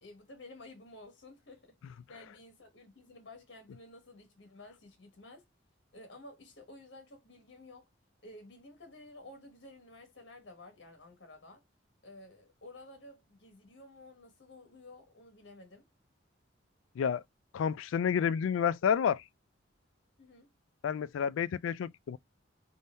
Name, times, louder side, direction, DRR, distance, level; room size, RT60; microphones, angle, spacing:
voice 1, 0.0-5.4 5.9-7.8 8.2-11.6 12.0-15.9 20.2-20.5, left 2 dB, 65° left, 1.3 m, -53 dB
voice 2, 17.5-19.2 20.8-22.2, left 7 dB, 90° left, 0.3 m, -30 dB
3.6 x 2.6 x 4.1 m
head